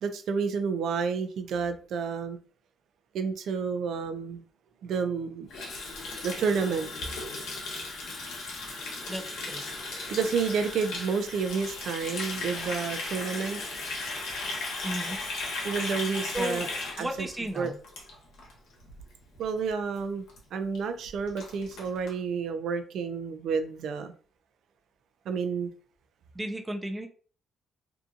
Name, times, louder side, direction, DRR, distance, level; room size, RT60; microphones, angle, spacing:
voice 1, 0.0-2.4 3.1-4.4 4.8-5.5 6.2-7.2 10.0-14.4 15.6-16.7 17.0-17.3 17.6-17.7 19.4-20.2 20.5-24.1 25.3-25.7, right 5 dB, 70° right, 8 dB, 0.4 m, -30 dB
Water tap faucet, 5.5-18.5 18.8-19.0 19.3-19.7 20.0-20.1 20.3-20.4 20.7-20.8 21.0-22.1, left 3 dB, 85° left, 0.9 m, -36 dB
voice 2, 9.1-9.6 14.8-15.2 16.3-16.7 17.0-17.8 26.3-27.1, right 1 dB, 15° right, 3 dB, 0.5 m, -34 dB
2.7 x 2.5 x 2.4 m, 0.41 s
cardioid pair, 90°, 0 cm